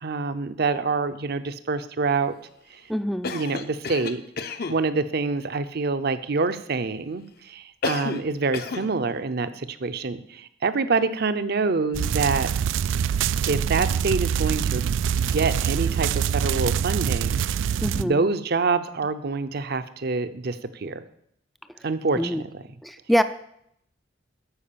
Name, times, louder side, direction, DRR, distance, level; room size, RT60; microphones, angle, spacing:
voice 1, 0.0-2.3 2.7-2.8 3.3-4.2 4.7-12.5 13.4-21.0 21.8-22.6, right 4 dB, 60° right, 12 dB, 0.7 m, -26 dB
voice 2, 2.9-3.3 17.8-18.3 21.8-21.9 22.2-22.4 22.8-23.2, equal, ahead, 10 dB, 0.3 m, -25 dB
Cough, 3.2-4.8 7.8-8.3 8.5-8.9, left 4 dB, 55° left, 0.7 m, -31 dB
sound 1, 11.9-18.0, right 8 dB, 90° right, 0.3 m, -24 dB
13.0 x 4.9 x 6.9 m, 0.73 s
head